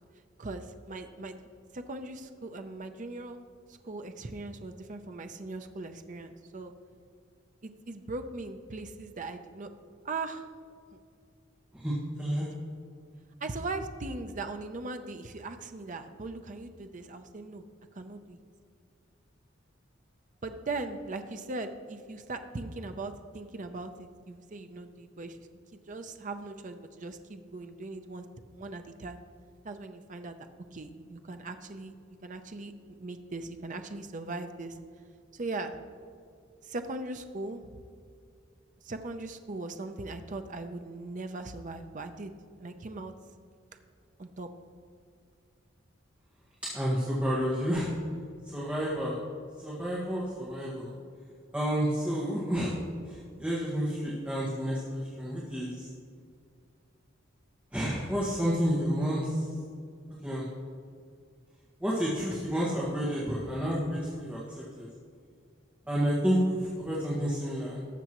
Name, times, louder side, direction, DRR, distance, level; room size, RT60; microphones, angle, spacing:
voice 1, 0.4-1.5 1.7-3.4 3.8-6.7 7.6-9.7 10.0-10.4 13.4-17.6 17.9-18.4 20.4-25.4 25.7-28.3 28.5-29.2 29.6-30.4 30.7-31.9 32.2-34.8 35.3-35.8 36.6-37.7 38.8-42.3 42.6-43.1 44.2-44.5, right 2 dB, 40° right, 7 dB, 0.6 m, -39 dB
voice 2, 11.7-12.5 46.7-47.9 48.5-49.1 49.6-50.9 51.5-52.8 53.1-54.8 55.2-55.9 57.7-59.4 60.2-60.5 61.8-64.4 64.8-64.9 65.9-67.8, equal, 5° right, -6 dB, 1.5 m, -30 dB
18.5 x 6.9 x 3.0 m, 2.2 s
head